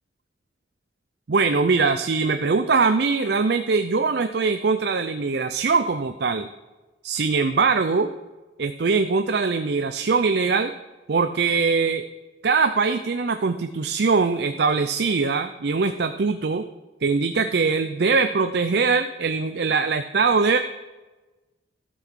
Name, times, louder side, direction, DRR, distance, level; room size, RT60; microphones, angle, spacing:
voice 1, 1.3-6.5 7.0-8.1 8.6-10.7 11.1-12.0 12.4-16.7 17.0-20.6, right 4 dB, 60° right, 8 dB, 0.5 m, -22 dB
12.5 x 5.8 x 6.3 m, 1.2 s
head